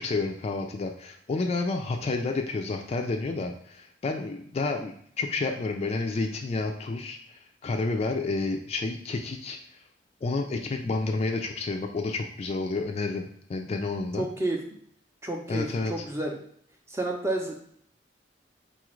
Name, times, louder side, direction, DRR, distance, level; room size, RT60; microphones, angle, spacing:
voice 1, 0.0-9.6 10.2-14.3 15.5-16.0, left 3 dB, 35° left, 4 dB, 0.3 m, -30 dB
voice 2, 14.2-14.8 15.2-16.4 16.9-17.6, right 2 dB, 15° right, 1 dB, 0.5 m, -30 dB
4.1 x 2.4 x 3.0 m, 0.64 s
head